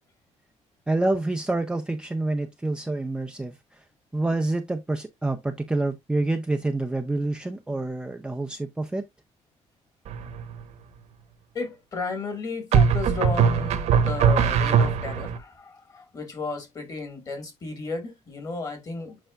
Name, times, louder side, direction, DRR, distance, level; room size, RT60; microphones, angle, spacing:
voice 1, 0.9-3.8 4.1-9.0, right 2 dB, 5° right, 0.5 m, -27 dB
sound 1, 10.1-10.6 12.7-15.4, right 7 dB, 65° right, 1.1 m, -21 dB
voice 2, 11.5-19.2, left 3 dB, 30° left, 1.9 m, -33 dB
7.8 x 5.7 x 2.4 m
cardioid pair, 170°, 12 cm